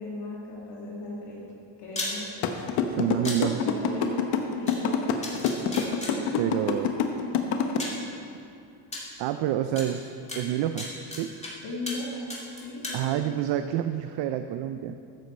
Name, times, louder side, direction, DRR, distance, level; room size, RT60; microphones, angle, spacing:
voice 1, 0.0-1.4 1.8-2.3 3.6-4.2 4.6-5.1 6.1-6.4 7.0-7.2 11.6-12.3 12.6-13.2, left 1 dB, 55° left, -5 dB, 2.2 m, -36 dB
sound 1, 1.9-2.1 3.2-3.4 4.7-4.8 5.2-6.1 7.2-7.3 7.8-8.0 8.9-9.0 9.8-9.9 10.3-11.5 11.9-12.0 12.3-13.0, left 2 dB, 15° left, 2.4 m, -34 dB
sound 2, 2.4-7.8, left 8 dB, 80° left, 1.1 m, -25 dB
voice 2, 2.9-3.6 6.4-6.9 9.2-11.3 12.9-14.9, right 12 dB, 65° right, 9 dB, 0.6 m, -28 dB
14.0 x 7.1 x 4.3 m, 2.5 s
cardioid pair, 100°, 48 cm